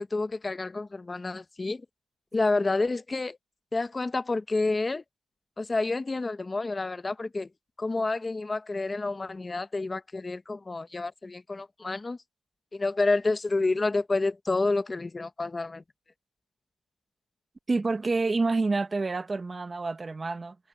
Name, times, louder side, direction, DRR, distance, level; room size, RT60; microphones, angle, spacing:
voice 1, 0.0-1.8 2.3-3.4 3.7-5.0 5.6-7.5 7.8-12.2 12.7-15.8, left 3 dB, 20° left, 0.9 m, -29 dB
voice 2, 17.7-20.6, right 3 dB, 25° right, 0.9 m, -28 dB
cardioid pair, 120°, 0 cm